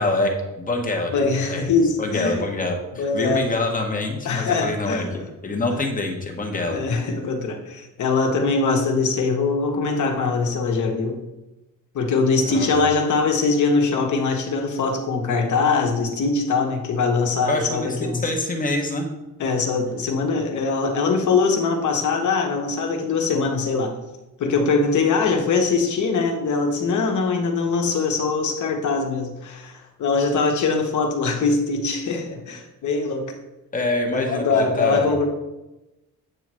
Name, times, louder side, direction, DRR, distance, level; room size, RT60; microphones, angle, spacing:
voice 1, 0.0-6.8 12.5-12.7 17.5-19.1 33.7-35.1, left 2 dB, 25° left, 3 dB, 0.8 m, -26 dB
voice 2, 1.1-2.5 3.0-3.5 4.2-5.3 5.7-5.8 6.7-11.2 11.9-18.2 19.4-24.0 24.4-33.3 34.1-35.3, left 4 dB, 60° left, 3 dB, 1.1 m, -22 dB
8.6 x 3.1 x 6.1 m, 1.0 s
wide cardioid pair, 175°, 34 cm